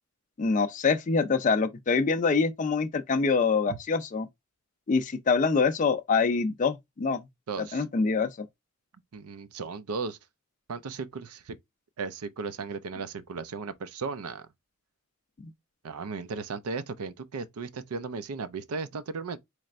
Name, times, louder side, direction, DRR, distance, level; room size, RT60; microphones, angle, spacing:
voice 1, 0.4-4.3 4.9-7.2 7.6-8.5 15.4-15.5, left 4 dB, 35° left, 0.4 m, -25 dB
voice 2, 7.5-7.8 9.1-10.2 10.7-11.6 12.0-14.5 15.8-19.4, right 4 dB, 90° right, 0.5 m, -36 dB
4.2 x 3.2 x 2.4 m
head